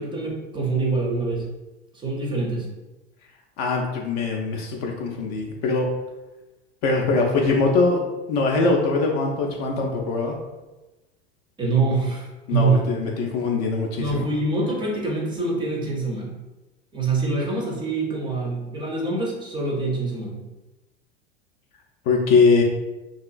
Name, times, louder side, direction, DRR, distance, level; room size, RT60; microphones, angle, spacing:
voice 1, 0.0-1.4 1.9-2.7 11.6-12.9 14.0-16.3 16.9-20.4, right 3 dB, 15° right, -2 dB, 0.5 m, -25 dB
voice 2, 3.6-5.9 6.8-8.0 8.3-10.4 12.5-14.3 22.1-22.6, left 3 dB, 40° left, 0 dB, 0.4 m, -22 dB
2.8 x 2.4 x 2.3 m, 1.1 s
figure-of-eight pair, 80°, 32 cm